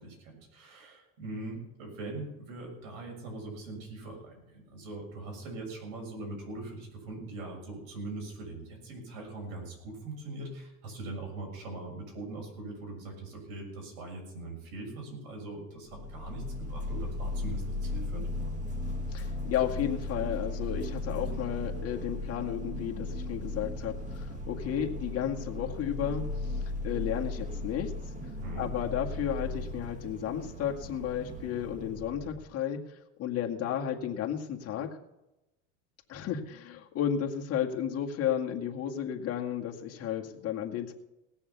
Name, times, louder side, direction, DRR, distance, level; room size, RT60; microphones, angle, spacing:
voice 1, 0.0-16.4 16.7-18.3 28.4-28.7, right 2 dB, 80° right, 1 dB, 6.6 m, -41 dB
sound 1, 15.9-32.5, left 2 dB, 20° right, 1.7 m, -36 dB
voice 2, 19.1-27.9 28.6-34.9 36.1-40.9, left 9 dB, 35° left, 1 dB, 2.0 m, -33 dB
18.5 x 7.1 x 7.0 m, 0.94 s
supercardioid pair, 135°, 40 cm